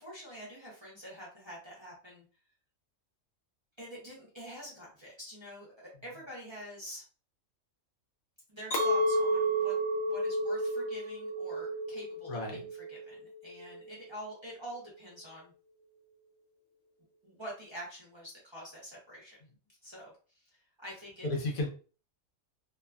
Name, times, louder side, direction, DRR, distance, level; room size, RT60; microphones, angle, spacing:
voice 1, 0.0-2.2 3.8-7.0 8.5-9.7 10.0-15.5 17.2-19.4 19.8-20.1 20.8-21.3, equal, 25° right, -6 dB, 0.7 m, -46 dB
Chink clink, 8.7-14.1, right 1 dB, 55° left, 0.8 m, -31 dB
voice 2, 12.3-12.7 21.2-21.7, left 2 dB, 85° left, 1 dB, 1.3 m, -33 dB
2.9 x 2.2 x 2.4 m, 0.38 s
omnidirectional pair, 1.4 m